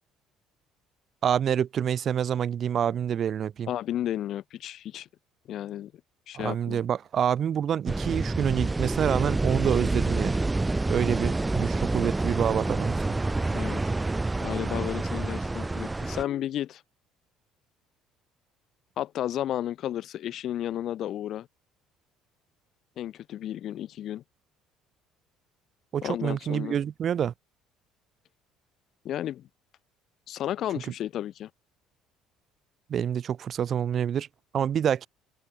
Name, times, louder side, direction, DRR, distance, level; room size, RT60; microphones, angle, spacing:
voice 1, 1.2-3.7 6.3-10.4 10.9-13.0 25.9-27.3 32.9-34.3 34.5-35.1, right 9 dB, 40° right, 1.4 m, -27 dB
voice 2, 3.7-5.1 5.5-5.9 6.3-6.8 13.5-13.8 14.4-16.8 19.0-21.5 23.0-24.2 26.0-26.8 29.0-29.5 30.3-31.5, left 12 dB, 50° left, 1.9 m, -33 dB
sound 1, 7.9-16.2, right 2 dB, 10° right, 0.7 m, -28 dB
sound 2, 10.0-10.5 12.4-13.5 15.4-16.5, left 3 dB, 15° left, 3.7 m, -46 dB
open air
cardioid pair, 135°, 0 cm